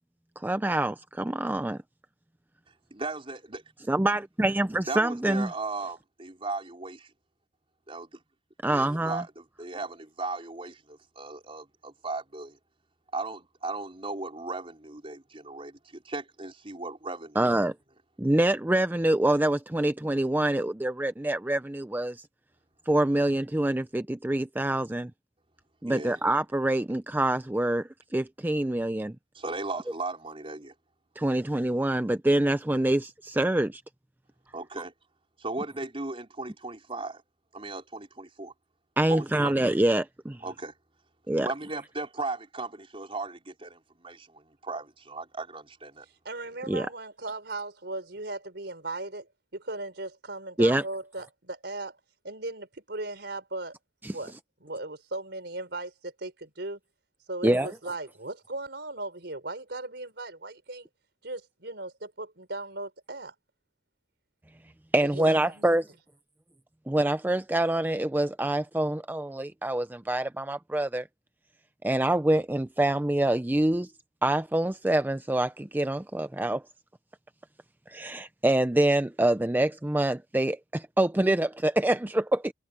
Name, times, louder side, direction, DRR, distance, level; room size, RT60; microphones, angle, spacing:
voice 1, 0.4-1.8 3.9-5.5 8.6-9.2 17.4-17.7 18.2-22.2 22.9-25.1 25.8-29.2 31.2-33.8 39.0-40.4 41.3-41.5 46.7-46.9 50.6-50.8 54.0-54.1 57.4-57.7 64.9-65.9 66.9-71.1 71.8-73.9 74.2-76.6 77.9-82.5, right 1 dB, 10° right, 0.5 m, -26 dB
voice 2, 2.9-3.6 4.9-7.1 7.9-8.2 8.7-12.6 13.1-17.5 25.8-26.2 29.3-30.7 34.5-34.9 35.4-37.2 37.5-38.5 39.1-39.6 40.4-40.7 41.3-46.1, right 3 dB, 30° right, 4.3 m, -37 dB
voice 3, 46.3-52.0 52.2-53.7 54.1-54.3 54.6-56.8 57.3-60.9 61.2-63.3 65.0-65.8, right 2 dB, 65° right, 5.4 m, -37 dB
head